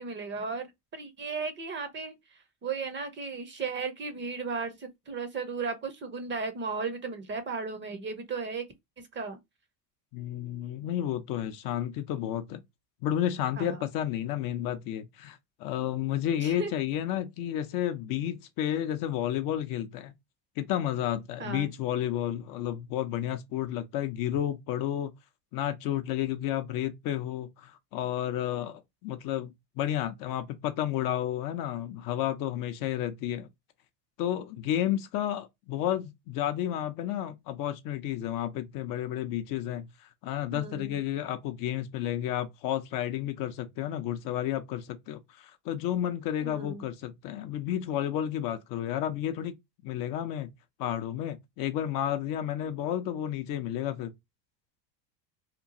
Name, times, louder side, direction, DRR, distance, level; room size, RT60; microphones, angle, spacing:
voice 1, 0.0-2.1 2.6-8.7 9.1-9.4 13.6-13.8 16.4-16.7 21.4-21.7 40.5-40.9 46.4-46.8, right 4 dB, 25° right, 0.6 m, -35 dB
voice 2, 10.1-12.6 13.0-20.1 20.6-25.1 25.5-29.5 29.8-33.5 34.2-49.5 49.8-50.5 50.8-54.1, left 11 dB, 45° left, 0.5 m, -31 dB
2.9 x 2.2 x 2.5 m
hypercardioid pair, 90°, 49 cm